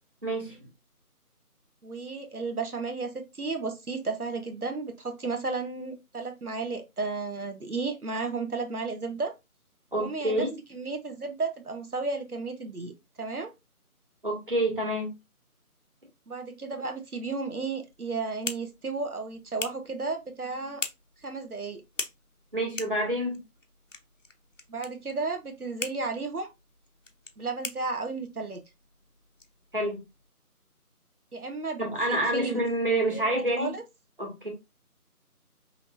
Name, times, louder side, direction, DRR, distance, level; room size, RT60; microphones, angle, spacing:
voice 1, 0.2-0.6 9.9-10.5 14.2-15.1 22.5-23.4 29.7-30.0 31.8-33.7 34.2-34.5, right 1 dB, 35° right, 1.8 m, -27 dB
voice 2, 1.8-9.3 10.0-12.9 13.2-13.5 16.3-20.8 21.2-21.8 24.7-26.5 27.4-28.6 31.3-32.6 33.1-33.8, right 3 dB, 70° right, 1.2 m, -33 dB
sound 1, 17.9-30.3, left 3 dB, 55° left, 0.7 m, -43 dB
5.6 x 3.0 x 2.5 m
figure-of-eight pair, 170°, 46 cm